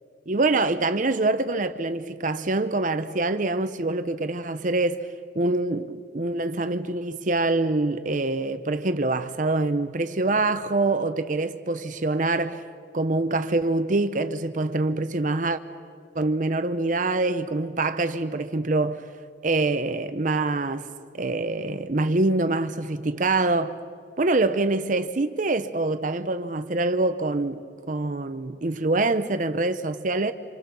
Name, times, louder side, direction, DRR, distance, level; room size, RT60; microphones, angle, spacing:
voice 1, 0.3-5.1 5.3-12.6 12.9-15.6 16.1-19.1 19.4-20.9 21.1-23.8 24.2-30.3, right 2 dB, 45° right, 0.8 m, -25 dB
29.0 x 27.0 x 6.9 m
head